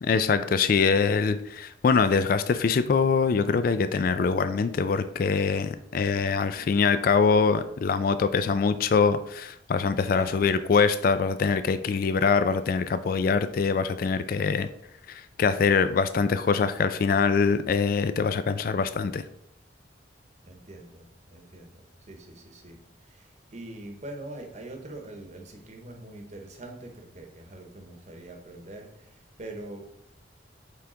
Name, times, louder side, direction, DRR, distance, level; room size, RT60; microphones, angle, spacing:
voice 1, 0.0-14.7 15.1-19.2, left 5 dB, 50° left, 11 dB, 0.3 m, -24 dB
voice 2, 6.4-6.7 10.0-10.5 20.4-29.8, right 1 dB, 40° right, 3 dB, 1.0 m, -43 dB
9.0 x 3.5 x 3.8 m, 0.75 s
head